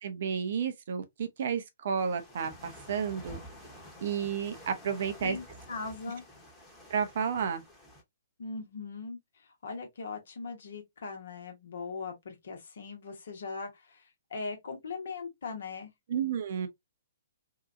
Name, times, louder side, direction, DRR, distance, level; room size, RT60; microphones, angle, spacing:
voice 1, 0.0-3.4 4.0-5.4 6.9-7.6 16.1-16.7, right 7 dB, 55° right, 0.6 m, -31 dB
sound 1, 2.0-8.0, equal, 5° left, 1.0 m, -50 dB
voice 2, 5.2-6.2 8.4-15.9, left 4 dB, 65° left, 1.0 m, -40 dB
2.8 x 2.3 x 2.4 m
figure-of-eight pair, 120°, 0 cm